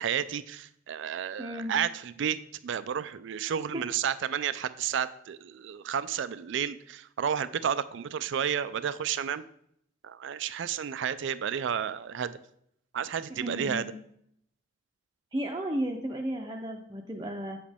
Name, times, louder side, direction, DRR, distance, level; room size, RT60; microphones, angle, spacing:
voice 1, 0.0-2.4 2.6-9.4 10.0-12.4 12.9-13.8, right 8 dB, 65° right, 14 dB, 0.4 m, -31 dB
voice 2, 1.4-1.7 3.7-3.8 13.3-13.9 15.3-17.6, right 1 dB, 20° right, 1 dB, 0.6 m, -34 dB
7.8 x 7.3 x 3.5 m, 0.70 s
head